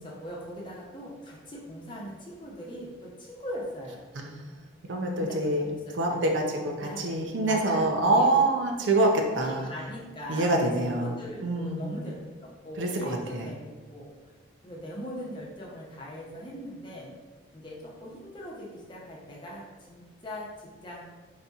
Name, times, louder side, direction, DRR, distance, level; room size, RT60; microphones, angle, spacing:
voice 1, 0.0-4.0 5.2-6.2 6.8-8.3 9.0-9.1 9.4-14.1 14.6-17.1 17.5-21.0, equal, 25° left, -5 dB, 0.8 m, -41 dB
voice 2, 4.9-9.1 9.4-9.7 10.3-11.9 12.8-13.5, right 2 dB, 80° right, 2 dB, 0.6 m, -26 dB
4.1 x 2.8 x 3.5 m, 1.3 s
head